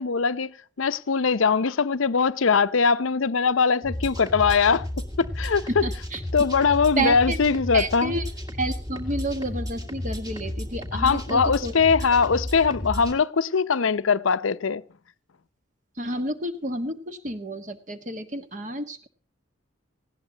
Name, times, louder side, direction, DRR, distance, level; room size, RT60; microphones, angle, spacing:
voice 1, 0.0-5.7 6.3-8.1 10.9-14.8, left 5 dB, 80° left, 0.7 m, -22 dB
sound 1, 3.8-13.1, left 1 dB, 20° right, 2.2 m, -33 dB
voice 2, 5.8-6.2 7.0-7.4 7.7-8.3 8.6-11.7 16.0-19.1, right 2 dB, 40° right, 1.5 m, -30 dB
19.0 x 16.5 x 2.9 m
head